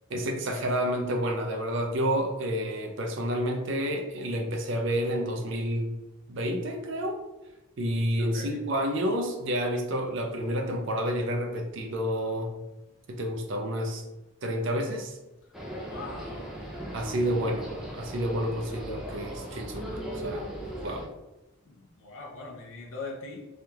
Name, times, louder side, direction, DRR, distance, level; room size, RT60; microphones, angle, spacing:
voice 1, 0.1-6.0 6.3-7.2 7.8-12.5 13.1-14.0 14.4-15.2 16.9-20.5 20.8-21.0, equal, 60° right, 3 dB, 0.5 m, -29 dB
voice 2, 8.2-8.6 15.7-16.5 21.7-23.5, left 3 dB, 65° left, -2 dB, 0.5 m, -41 dB
sound 1, 15.5-21.1, right 1 dB, ahead, 0.4 m, -38 dB
3.4 x 2.3 x 2.8 m, 1.0 s
head